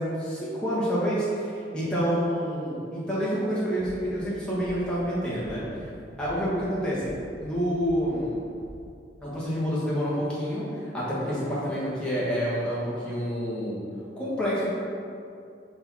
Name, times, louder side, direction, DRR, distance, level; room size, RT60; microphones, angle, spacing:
voice 1, 0.0-5.6 6.2-7.1 7.4-8.4 9.2-13.8 14.2-14.7, equal, 5° left, -9 dB, 1.4 m, -28 dB
sound 1, 3.8-4.3 4.6-5.1 5.4-5.9 6.2-6.7 7.0-7.5 7.8-8.3 8.6-8.7, right 1 dB, 60° right, 1.0 m, -47 dB
5.4 x 4.3 x 4.1 m, 2.5 s
head